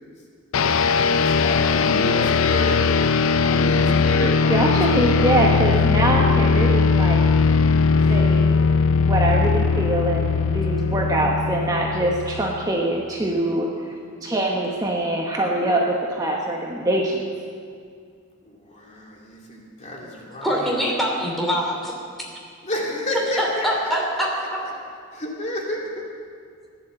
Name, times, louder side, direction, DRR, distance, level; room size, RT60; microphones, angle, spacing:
sound 1, 0.5-12.7, left 5 dB, 80° left, 0.5 m, -19 dB
voice 1, 1.1-2.8 3.4-5.6 18.4-20.7 22.6-24.5 25.1-26.1, left 1 dB, 35° left, -2 dB, 2.7 m, -31 dB
voice 2, 4.2-7.2 8.1-8.5 8.9-13.9 14.2-17.2, right 1 dB, 20° right, -2 dB, 1.2 m, -23 dB
voice 3, 20.4-21.9 23.4-24.6, equal, ahead, -2 dB, 3.0 m, -24 dB
15.5 x 10.5 x 7.6 m, 2.2 s
head